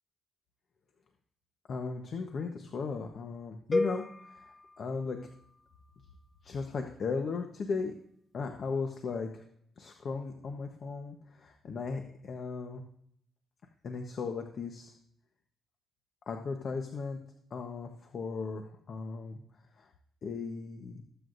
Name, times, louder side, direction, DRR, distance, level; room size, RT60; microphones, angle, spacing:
voice 1, 1.7-5.2 6.4-7.9 8.3-9.4 9.8-12.8 13.8-14.9 16.3-17.2 17.5-19.4 19.8-19.9 20.2-21.0, left 4 dB, 50° left, 4 dB, 1.1 m, -37 dB
sound 1, 3.7-5.8, left 2 dB, 20° left, 0.4 m, -35 dB
20.5 x 8.0 x 2.6 m, 0.68 s
cardioid pair, 90°, 0 cm